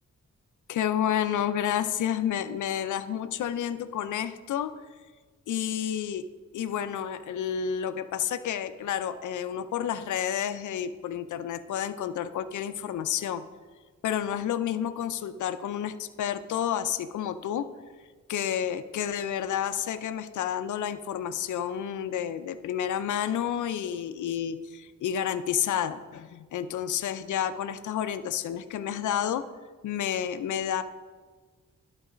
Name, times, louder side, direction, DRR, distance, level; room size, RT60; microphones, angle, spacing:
voice 1, 0.7-4.7 5.5-6.2 6.5-13.4 14.0-17.7 18.3-29.4 29.8-30.8, left 9 dB, 90° left, 11 dB, 0.5 m, -30 dB
11.5 x 4.0 x 5.0 m, 1.4 s
cardioid pair, 85°, 29 cm